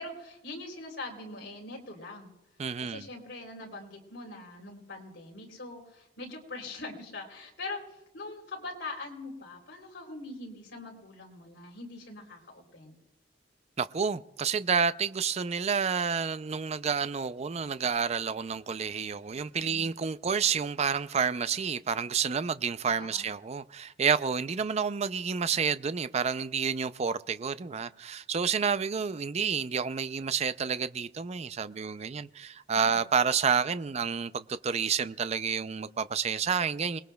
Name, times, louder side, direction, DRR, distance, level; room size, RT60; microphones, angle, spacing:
voice 1, 0.0-2.3 2.8-13.0 19.5-19.9 22.9-23.3 32.7-33.0, left 2 dB, 70° left, 3.4 m, -42 dB
voice 2, 2.6-3.1 13.8-37.0, right 6 dB, 35° right, 0.4 m, -29 dB
27.0 x 20.0 x 2.3 m
head